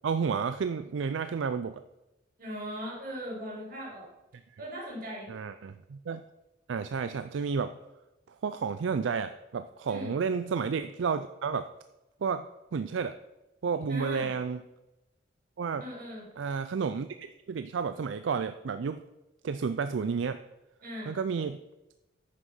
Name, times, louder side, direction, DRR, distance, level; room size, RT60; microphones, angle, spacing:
voice 1, 0.0-1.8 4.5-4.6 5.3-6.2 6.7-7.7 8.4-11.7 12.2-12.4 12.7-13.1 13.6-14.6 15.6-15.8 16.4-19.0 19.4-20.4 21.1-21.6, right 5 dB, 75° right, 11 dB, 0.4 m, -31 dB
voice 2, 2.4-4.1 4.6-5.3 9.9-10.2 13.9-14.3 15.8-16.3 20.8-21.2, equal, 50° right, -4 dB, 3.7 m, -39 dB
9.5 x 6.4 x 5.6 m, 0.99 s
head